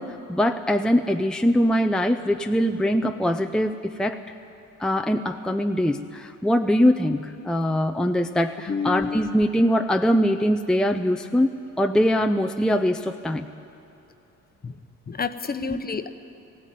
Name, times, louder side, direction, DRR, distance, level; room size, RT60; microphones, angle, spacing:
voice 1, 0.0-4.2 4.8-13.5 15.7-15.8, equal, ahead, 5 dB, 0.7 m, -22 dB
voice 2, 8.7-9.4 14.6-14.7 15.1-16.1, left 5 dB, 30° left, 9 dB, 1.0 m, -29 dB
17.5 x 16.5 x 9.3 m, 2.8 s
cardioid pair, 90°, 30 cm